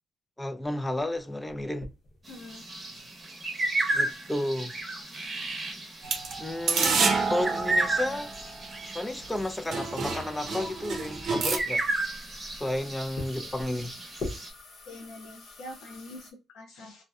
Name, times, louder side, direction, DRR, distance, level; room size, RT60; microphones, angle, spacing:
voice 1, 0.4-1.9 3.9-4.7 6.4-8.3 8.9-11.8 12.6-13.9, left 1 dB, 10° left, 0.3 m, -32 dB
sound 1, 0.6-16.3, left 2 dB, 60° left, 0.9 m, -46 dB
voice 2, 2.3-2.6 11.3-11.5 14.9-17.0, left 2 dB, 85° left, 0.5 m, -44 dB
sound 2, 2.3-14.5, right 2 dB, 30° right, 0.8 m, -33 dB
sound 3, 6.0-8.7 9.3-9.4 9.7-11.6, right 4 dB, 65° right, 0.7 m, -28 dB
2.5 x 2.1 x 2.3 m
cardioid pair, 90°, 0 cm